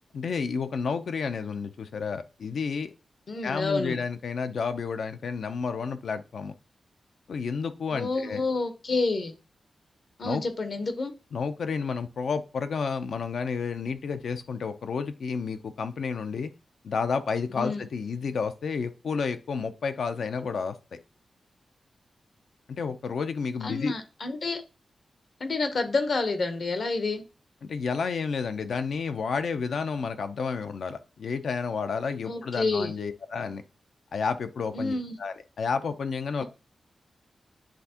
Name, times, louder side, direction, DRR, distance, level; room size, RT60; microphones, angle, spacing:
voice 1, 0.1-2.9 3.4-6.5 7.3-8.4 10.2-10.4 11.3-16.5 16.8-20.7 22.7-23.9 27.7-33.6 34.1-36.4, left 5 dB, 70° left, 0.6 m, -31 dB
voice 2, 3.3-4.0 7.9-9.3 10.2-11.1 17.5-17.8 23.6-24.6 25.4-27.2 32.3-32.9 34.7-35.2, left 3 dB, 50° left, 0.9 m, -29 dB
10.0 x 3.5 x 2.9 m
wide cardioid pair, 170°, 0 cm